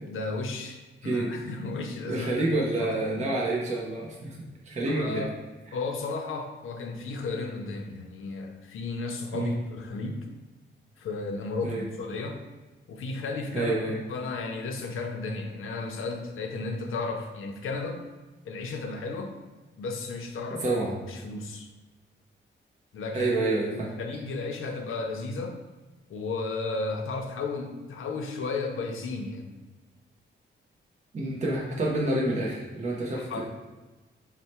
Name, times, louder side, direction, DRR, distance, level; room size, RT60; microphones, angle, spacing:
voice 1, 0.1-2.5 2.8-3.3 4.9-5.3 5.7-10.3 11.0-12.4 12.9-13.7 14.1-18.0 18.5-19.4 19.8-20.7 21.1-21.7 22.9-23.3 23.7-25.6 26.1-29.5 33.1-33.5, left 3 dB, 85° left, 3 dB, 0.6 m, -34 dB
voice 2, 2.1-4.4 4.7-5.2 9.3-9.6 11.6-11.9 13.5-14.0 20.6-20.9 23.1-23.9 31.1-33.5, right 2 dB, 35° right, -3 dB, 0.6 m, -28 dB
4.5 x 2.1 x 4.1 m, 1.2 s
wide cardioid pair, 180°, 20 cm